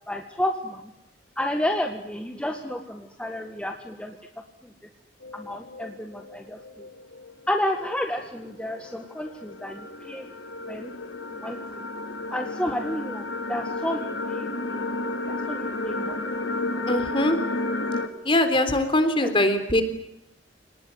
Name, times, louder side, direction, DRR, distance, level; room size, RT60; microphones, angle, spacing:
voice 1, 0.1-0.9 1.4-4.2 5.3-6.9 7.5-10.3 10.7-10.9 11.3-11.6 12.3-14.9 15.2-16.2 19.2-19.3, left 1 dB, 5° left, 4 dB, 1.8 m, -31 dB
sound 1, 5.2-18.1, left 2 dB, 80° left, 2.7 m, -32 dB
voice 2, 16.9-17.4 18.3-19.8, left 1 dB, 30° left, 9 dB, 3.5 m, -22 dB
27.5 x 19.5 x 9.6 m, 0.84 s
head